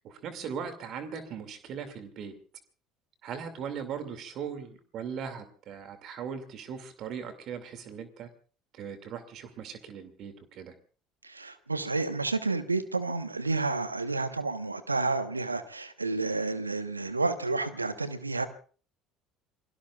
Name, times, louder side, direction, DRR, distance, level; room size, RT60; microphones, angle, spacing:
voice 1, 0.0-2.3 3.2-8.3 8.7-10.7, right 7 dB, 50° right, 9 dB, 2.3 m, -39 dB
voice 2, 11.2-18.5, right 3 dB, 90° right, 12 dB, 1.1 m, -30 dB
28.5 x 21.0 x 2.4 m, 0.40 s
figure-of-eight pair, 65°, 0 cm